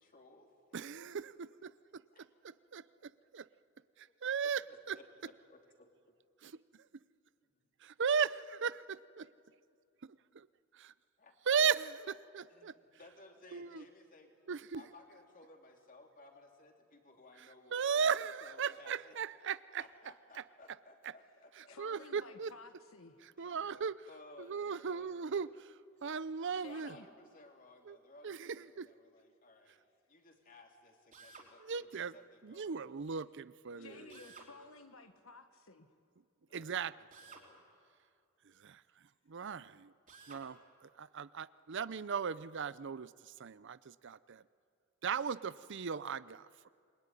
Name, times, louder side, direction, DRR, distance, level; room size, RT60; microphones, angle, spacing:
voice 1, 0.0-0.5 2.1-2.3 3.0-3.6 4.0-4.1 4.4-5.9 7.4-7.5 11.2-11.3 12.5-14.4 14.7-19.2 19.8-22.4 23.4-23.7 24.1-25.6 26.4-29.8 30.1-32.8 33.7-34.6 36.5-37.7, left 2 dB, 40° left, 3 dB, 3.3 m, -59 dB
voice 2, 0.7-2.0 2.4-3.5 4.0-4.6 4.9-5.0 6.4-6.6 7.8-8.3 8.6-9.2 10.7-10.9 11.5-12.7 13.5-13.8 14.5-14.8 17.7-19.8 21.8-22.5 23.4-24.1 24.4-25.5 26.0-27.0 27.9-28.0 28.2-28.9 31.6-32.1 32.4-34.1 36.5-36.9 38.6-38.8 39.3-39.9 40.3-44.4 45.0-46.7, right 6 dB, 60° right, 17 dB, 0.6 m, -37 dB
voice 3, 21.7-23.2 26.6-27.1 33.8-35.9, left 3 dB, 75° left, 8 dB, 1.6 m, -54 dB
Drill, 31.1-31.5 34.1-34.5 37.1-37.5 40.1-40.5, right 4 dB, 40° right, 4.0 m, -54 dB
27.5 x 21.5 x 9.9 m, 2.3 s
head